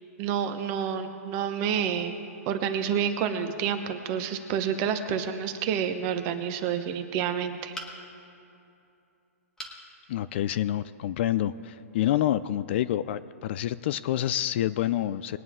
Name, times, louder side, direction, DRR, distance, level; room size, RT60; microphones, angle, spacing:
voice 1, 0.2-2.2 2.5-7.7, right 8 dB, 35° right, 8 dB, 1.0 m, -29 dB
sound 1, 7.7-8.3 9.6-9.8 10.4-10.5 10.8-10.9, equal, 5° left, 1.4 m, -40 dB
voice 2, 10.1-15.4, left 12 dB, 50° left, 15 dB, 0.4 m, -27 dB
21.0 x 9.1 x 3.6 m, 2.7 s
hypercardioid pair, 145°, 8 cm